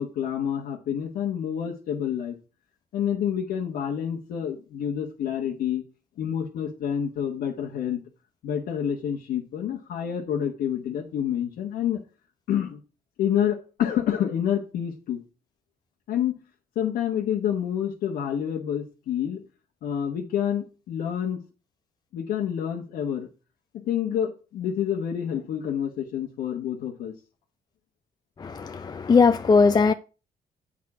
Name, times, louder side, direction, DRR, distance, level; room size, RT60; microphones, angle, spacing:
voice 1, 0.0-2.3 2.9-5.8 6.2-8.0 8.4-12.0 12.5-12.8 13.2-15.2 16.1-16.4 16.7-19.4 19.8-21.4 22.1-23.3 23.8-27.1, left 9 dB, 85° left, 1.1 m, -28 dB
voice 2, 28.4-29.9, left 4 dB, 25° left, 0.4 m, -19 dB
8.2 x 5.0 x 4.7 m
cardioid pair, 85°, 15 cm